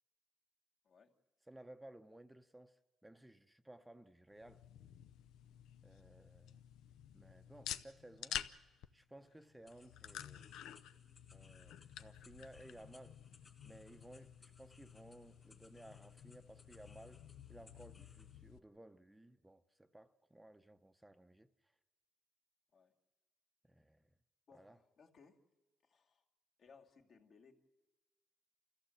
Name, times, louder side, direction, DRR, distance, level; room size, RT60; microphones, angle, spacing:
voice 1, 1.5-4.6 5.8-6.6 7.1-8.4 8.9-10.5 11.3-13.2 13.6-17.2 17.5-21.7 23.6-24.1 24.5-24.8, right 1 dB, 10° right, 0.7 m, -58 dB
sound 1, 4.3-18.6, left 10 dB, 85° left, 0.7 m, -51 dB
sound 2, 9.7-18.4, left 3 dB, 30° left, 2.1 m, -67 dB
voice 2, 24.5-25.5 25.8-26.2 26.6-27.5, left 5 dB, 60° left, 2.4 m, -64 dB
29.0 x 14.5 x 7.9 m
cardioid pair, 90°, 0 cm